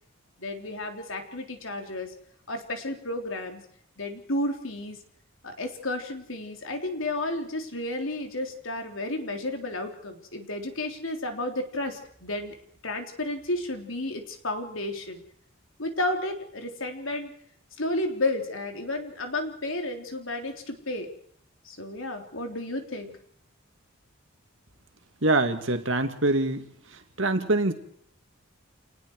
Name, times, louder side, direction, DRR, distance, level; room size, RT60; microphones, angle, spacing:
voice 1, 0.4-2.1 2.5-3.6 4.0-5.0 5.4-12.6 12.8-15.2 15.8-17.3 17.8-21.1 21.6-23.2, left 1 dB, 75° left, 4 dB, 3.6 m, -32 dB
voice 2, 25.2-26.6 27.2-27.7, right 2 dB, 65° right, 7 dB, 2.4 m, -24 dB
29.0 x 19.0 x 4.8 m, 0.64 s
head